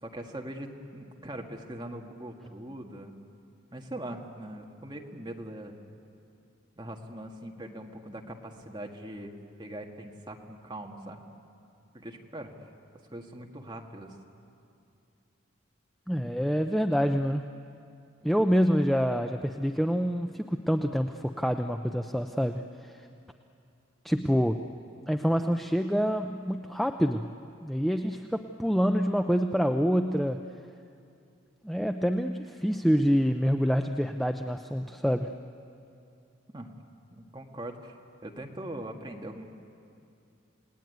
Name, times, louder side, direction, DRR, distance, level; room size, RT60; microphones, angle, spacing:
voice 1, 0.0-3.2 3.7-5.8 6.8-9.3 9.6-11.2 11.9-12.7 13.1-14.2 36.5-36.7 37.1-38.0 38.2-39.4, right 1 dB, 20° right, 2 dB, 1.8 m, -41 dB
voice 2, 16.1-17.5 18.2-23.1 24.0-24.6 25.1-27.3 27.6-30.4 31.6-35.3, equal, ahead, 6 dB, 0.5 m, -26 dB
29.0 x 18.5 x 9.4 m, 2.5 s
head